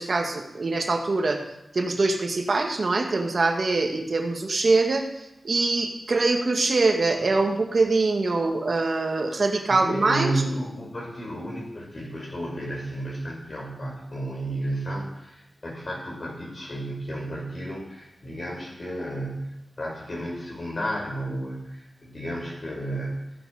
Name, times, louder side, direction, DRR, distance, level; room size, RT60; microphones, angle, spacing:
voice 1, 0.0-1.4 1.7-5.1 5.4-10.3, right 3 dB, 65° right, 3 dB, 1.6 m, -23 dB
voice 2, 9.7-23.3, right 1 dB, 50° left, -3 dB, 6.1 m, -32 dB
14.5 x 9.1 x 4.9 m, 0.85 s
wide cardioid pair, 65°, 0 cm